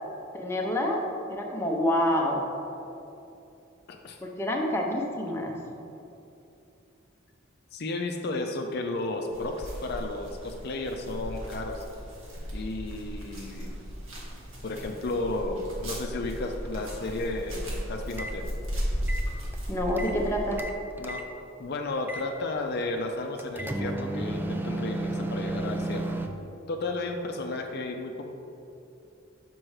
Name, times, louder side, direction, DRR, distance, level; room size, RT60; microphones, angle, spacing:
voice 1, 0.3-1.0 1.3-2.5 4.2-5.6 19.7-20.6, left 1 dB, 10° left, -1 dB, 0.7 m, -27 dB
voice 2, 3.9-4.2 7.7-11.8 12.5-13.8 14.6-18.5 21.0-21.2 21.6-26.1 26.7-28.2, left 2 dB, 50° left, 3 dB, 0.5 m, -33 dB
sound 1, 9.3-20.6, equal, 75° right, 1.6 m, -36 dB
sound 2, 18.1-18.4 19.0-20.2 20.5-21.3 22.1-22.3 23.4-26.3, right 1 dB, 10° right, 0.3 m, -32 dB
6.1 x 5.3 x 4.8 m, 2.8 s
head